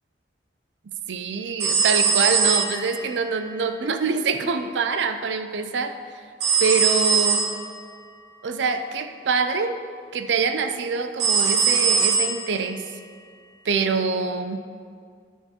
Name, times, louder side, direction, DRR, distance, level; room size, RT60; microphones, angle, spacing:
voice 1, 1.1-5.9 6.6-7.5 8.4-9.8 10.1-12.9 13.6-14.6, right 4 dB, 90° right, 8 dB, 0.5 m, -25 dB
sound 1, 1.6-3.2 6.4-7.7 11.2-12.6, right 5 dB, 70° right, 1.1 m, -21 dB
10.0 x 4.6 x 4.4 m, 2.1 s
head